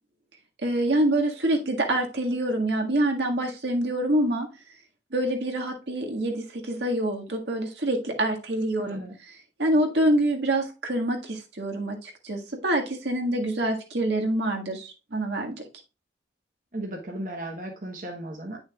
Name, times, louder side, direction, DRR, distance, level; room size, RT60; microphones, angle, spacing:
voice 1, 0.6-4.5 5.1-9.0 9.6-15.6, right 1 dB, 75° right, 2 dB, 1.7 m, -26 dB
voice 2, 16.7-18.6, right 1 dB, 45° right, 1 dB, 1.1 m, -35 dB
9.2 x 6.2 x 2.3 m, 0.30 s
head